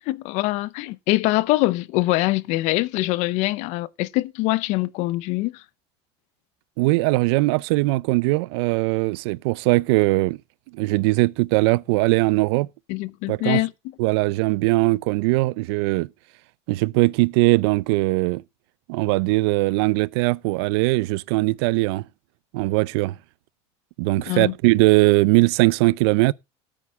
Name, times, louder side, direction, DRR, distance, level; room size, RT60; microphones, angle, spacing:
voice 1, 0.0-5.6 12.9-13.7 24.3-24.5, left 19 dB, 60° left, 0.7 m, -23 dB
voice 2, 6.8-10.4 10.7-12.7 13.3-13.6 14.0-16.1 16.7-18.4 18.9-22.0 22.5-23.1 24.0-26.3, right 22 dB, 75° right, 0.5 m, -20 dB
13.0 x 8.7 x 3.6 m
supercardioid pair, 135°, 13 cm